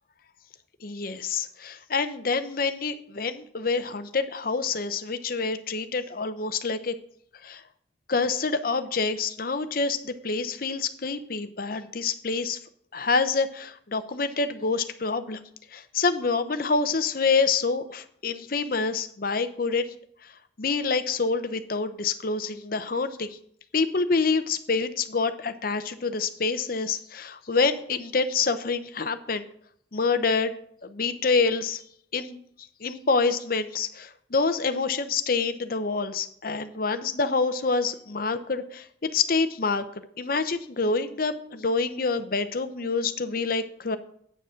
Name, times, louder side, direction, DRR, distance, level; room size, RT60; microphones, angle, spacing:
voice 1, 0.8-7.0 7.4-7.6 8.1-12.6 12.9-15.4 15.7-19.9 20.6-23.4 23.7-29.5 29.9-30.5 30.8-31.8 32.1-32.4 32.8-39.8 40.2-44.0, left 4 dB, 50° left, 10 dB, 0.7 m, -27 dB
8.7 x 6.9 x 6.4 m, 0.66 s
head